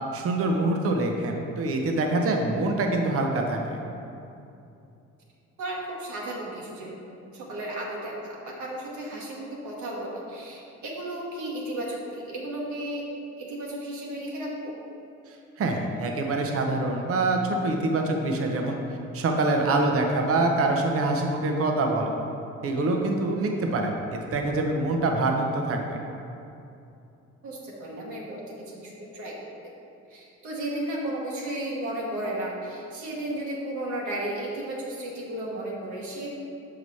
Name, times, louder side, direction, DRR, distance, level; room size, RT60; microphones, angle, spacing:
voice 1, 0.1-3.8 15.6-18.8 19.1-22.1 22.6-26.0, right 2 dB, 50° right, 2 dB, 0.8 m, -25 dB
voice 2, 5.6-13.0 13.4-14.7 27.4-29.5 30.1-36.3, right 1 dB, 75° right, -4 dB, 1.3 m, -34 dB
5.9 x 4.9 x 4.1 m, 2.7 s
cardioid pair, 90°, 30 cm